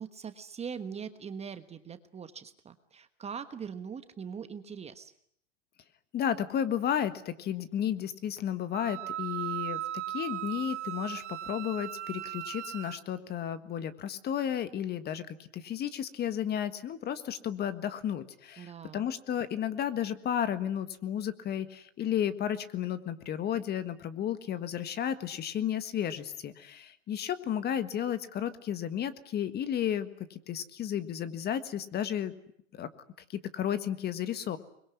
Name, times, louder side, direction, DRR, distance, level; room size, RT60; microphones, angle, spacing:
voice 1, 0.0-5.1 18.6-19.1, right 6 dB, 15° right, 10 dB, 1.3 m, -41 dB
voice 2, 6.1-32.3 32.7-32.9 33.3-34.6, left 9 dB, 25° left, 12 dB, 1.6 m, -33 dB
Wind instrument woodwind instrument, 8.7-13.0, right 13 dB, 70° right, 1.7 m, -37 dB
24.0 x 22.0 x 9.8 m, 0.68 s
hypercardioid pair, 120°, 37 cm